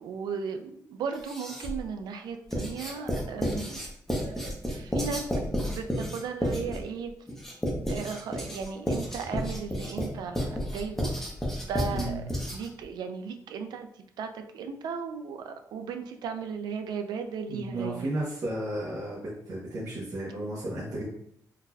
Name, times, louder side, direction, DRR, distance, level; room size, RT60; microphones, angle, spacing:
voice 1, 0.0-3.9 4.2-5.3 5.6-7.1 7.9-11.1 11.7-18.1, right 5 dB, 85° right, 7 dB, 0.4 m, -36 dB
Writing, 1.1-1.9 2.5-12.8, equal, 5° left, 0.7 m, -32 dB
voice 2, 11.9-12.3 17.5-21.1, right 1 dB, 50° right, -8 dB, 0.9 m, -33 dB
3.8 x 2.6 x 2.3 m, 0.68 s
wide cardioid pair, 150°, 7 cm